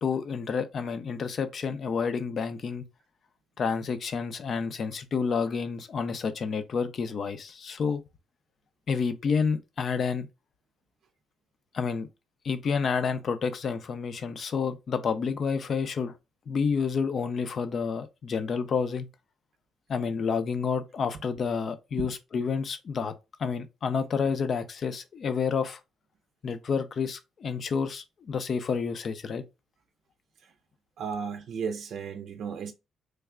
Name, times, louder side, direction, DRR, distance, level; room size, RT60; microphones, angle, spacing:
voice 1, 0.0-2.8 3.6-8.0 8.9-10.3 11.7-12.1 12.4-16.1 16.5-19.1 19.9-23.1 23.4-25.8 26.4-29.4, left 5 dB, 50° left, 0.5 m, -29 dB
voice 2, 31.0-32.7, right 6 dB, 70° right, 0.5 m, -34 dB
3.3 x 2.2 x 3.5 m
cardioid pair, 90°, 0 cm